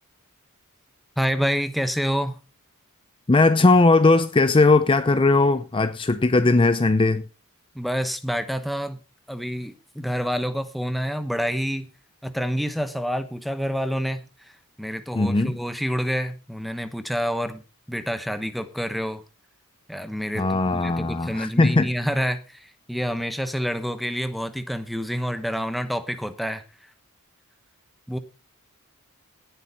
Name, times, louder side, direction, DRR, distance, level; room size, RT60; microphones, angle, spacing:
voice 1, 1.2-2.4 7.7-9.0 9.3-11.9 12.2-14.5 14.8-17.6 17.9-19.2 19.9-26.6 28.1-28.2, equal, ahead, 1.0 m, -28 dB
voice 2, 3.3-7.2 15.1-15.6 20.4-21.9, left 3 dB, 25° left, 0.5 m, -18 dB
17.0 x 8.1 x 4.1 m
head